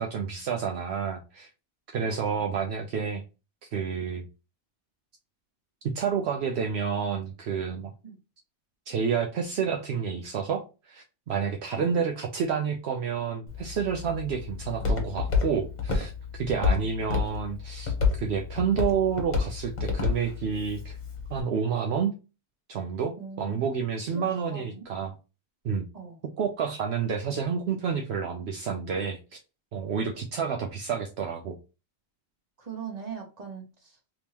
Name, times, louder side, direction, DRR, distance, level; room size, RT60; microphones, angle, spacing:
voice 1, 0.0-1.5 1.9-3.2 3.7-4.3 5.8-7.9 8.9-21.0 21.3-22.1 22.7-25.1 25.6-25.9 26.2-29.4 29.7-31.6, right 6 dB, 70° right, 3 dB, 0.8 m, -29 dB
voice 2, 2.1-2.4 8.0-8.2 11.7-11.9 16.6-16.9 23.2-23.6 24.1-24.2 24.5-24.9 25.9-26.2 32.6-34.0, right 6 dB, 35° right, 2 dB, 1.2 m, -41 dB
Walk footsteps, 13.5-21.4, left 5 dB, 40° left, 1.1 m, -30 dB
3.5 x 3.0 x 2.9 m, 0.30 s
omnidirectional pair, 1.1 m